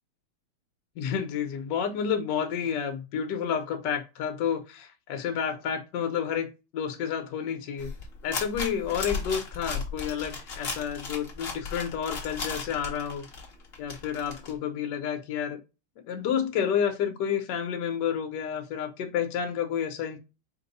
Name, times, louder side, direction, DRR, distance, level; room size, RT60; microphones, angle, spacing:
voice 1, 1.0-7.9 8.2-13.3 13.8-15.6 16.0-20.2, left 8 dB, 65° left, 1.3 m, -30 dB
sound 1, 7.8-14.5, left 4 dB, 40° left, 0.9 m, -35 dB
5.2 x 2.2 x 3.9 m
omnidirectional pair, 2.4 m